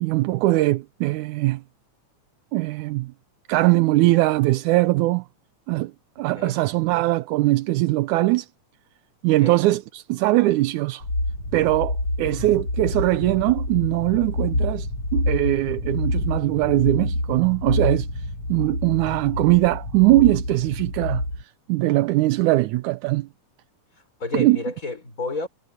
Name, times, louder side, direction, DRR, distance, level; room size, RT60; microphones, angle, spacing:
voice 1, 0.0-1.6 2.5-3.1 3.5-5.2 5.7-5.9 6.2-8.5 9.2-11.0 11.5-14.9 15.1-18.1 18.5-21.2 21.7-23.3 24.3-24.6, right 18 dB, 80° right, 2.1 m, -21 dB
sound 1, 11.0-21.4, left 1 dB, 40° left, 3.6 m, -27 dB
voice 2, 24.2-25.5, left 3 dB, 25° left, 6.3 m, -30 dB
omnidirectional pair, 3.5 m